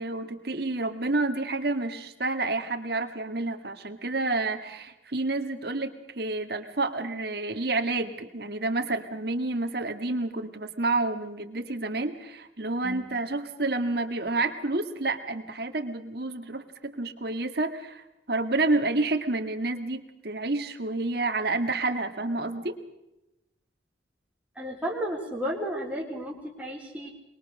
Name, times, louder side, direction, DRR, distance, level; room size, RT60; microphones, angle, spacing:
voice 1, 0.0-22.8, right 2 dB, 55° right, 6 dB, 1.9 m, -29 dB
voice 2, 24.6-27.1, equal, 5° right, -2 dB, 3.7 m, -33 dB
23.0 x 22.0 x 6.4 m, 0.92 s
head